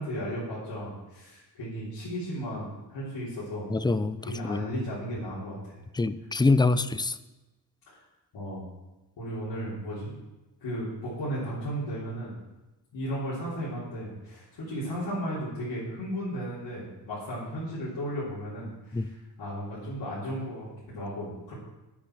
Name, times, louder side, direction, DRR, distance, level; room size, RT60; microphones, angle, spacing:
voice 1, 0.0-3.7 4.2-5.8 7.9-8.0 8.3-8.7 9.2-10.1 10.6-12.3 12.9-21.6, equal, 90° left, -10 dB, 3.6 m, -35 dB
voice 2, 3.7-4.7 5.9-7.2 18.9-19.1, left 3 dB, 10° left, 13 dB, 0.3 m, -25 dB
8.6 x 8.5 x 6.0 m, 1.1 s
wide cardioid pair, 125°, 43 cm